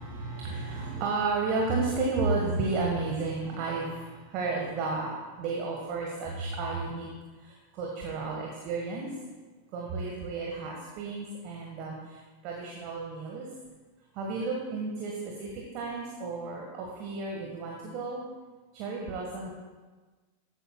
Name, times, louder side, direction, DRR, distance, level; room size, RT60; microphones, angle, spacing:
voice 1, 0.0-5.1 5.4-7.1 7.4-9.1 9.7-13.5 14.1-15.1 15.4-18.2 18.7-19.5, right 3 dB, 40° right, -1 dB, 1.6 m, -32 dB
14.0 x 10.0 x 2.4 m, 1.3 s
figure-of-eight pair, 90°, 0 cm